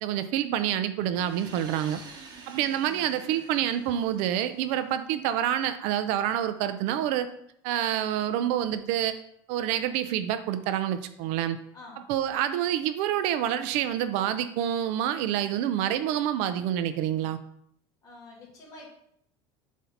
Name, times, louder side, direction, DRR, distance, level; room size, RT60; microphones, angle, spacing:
voice 1, 0.0-2.0 2.5-7.3 7.6-9.2 9.5-11.6 12.1-17.4, right 11 dB, 60° right, 11 dB, 0.5 m, -27 dB
sound 1, 1.1-4.9, right 4 dB, 35° right, 0.9 m, -48 dB
voice 2, 18.0-18.9, left 2 dB, 25° left, -3 dB, 2.3 m, -47 dB
7.3 x 2.8 x 5.7 m, 0.72 s
cardioid pair, 160°, 13 cm